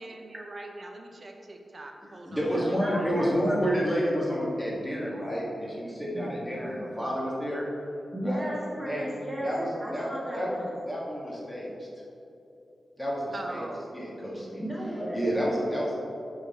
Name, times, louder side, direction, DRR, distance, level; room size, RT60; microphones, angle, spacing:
voice 1, 0.0-2.4 13.3-13.9, right 2 dB, 30° right, 3 dB, 0.7 m, -41 dB
voice 2, 2.0-7.6 8.2-8.4 8.9-9.1 9.4-10.1 10.3-10.5 10.9-11.9 13.0-13.6 13.9-14.6 15.1-15.9, equal, 5° left, -6 dB, 1.6 m, -29 dB
voice 3, 2.5-3.8 6.1-6.3 8.1-9.5 9.8-10.7 14.3-15.4, equal, 10° right, -5 dB, 1.6 m, -35 dB
11.0 x 4.0 x 4.2 m, 2.8 s
wide cardioid pair, 170°, 0 cm